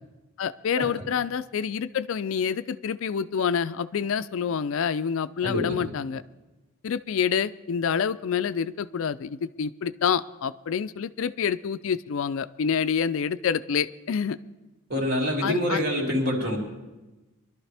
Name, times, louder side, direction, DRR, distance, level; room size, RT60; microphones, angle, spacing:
voice 1, 0.4-6.2 6.8-14.4 15.4-15.8, left 7 dB, 65° left, 15 dB, 0.4 m, -27 dB
voice 2, 5.4-5.9 14.9-16.6, equal, 50° right, -1 dB, 2.8 m, -26 dB
23.5 x 12.0 x 3.4 m, 1.1 s
head